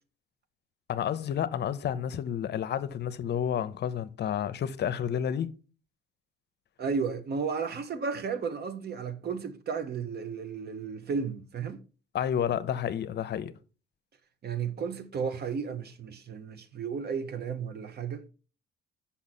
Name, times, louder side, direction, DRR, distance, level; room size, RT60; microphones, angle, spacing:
voice 1, 0.9-5.5 12.1-13.5, left 9 dB, 60° left, 0.6 m, -30 dB
voice 2, 6.8-11.8 14.4-18.2, right 5 dB, 55° right, 0.9 m, -33 dB
6.0 x 5.6 x 4.2 m
cardioid pair, 90°, 20 cm